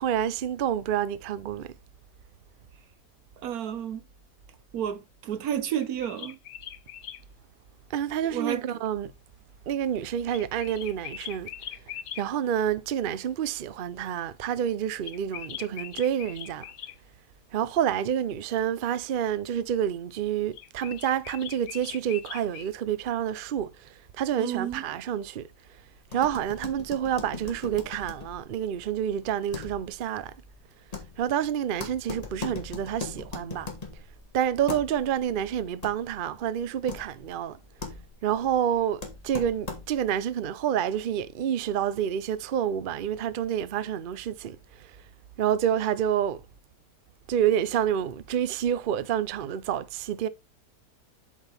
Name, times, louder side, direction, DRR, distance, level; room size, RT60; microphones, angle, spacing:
voice 1, 0.0-1.7 7.9-9.1 9.7-11.5 12.2-16.7 17.5-25.5 26.1-30.3 31.2-33.7 34.3-37.6 38.2-45.0 45.4-46.4 47.3-50.3, right 9 dB, 55° right, 0.6 m, -28 dB
voice 2, 3.4-4.0 4.7-6.4 8.3-8.6 24.4-24.8, right 9 dB, 85° right, 1.4 m, -31 dB
sound 1, 5.7-7.2 10.3-12.2 15.0-17.0 20.5-22.7, left 10 dB, 85° left, 1.3 m, -41 dB
sound 2, 26.0-40.2, left 3 dB, 25° left, 1.8 m, -41 dB
7.9 x 6.3 x 3.4 m
omnidirectional pair, 1.5 m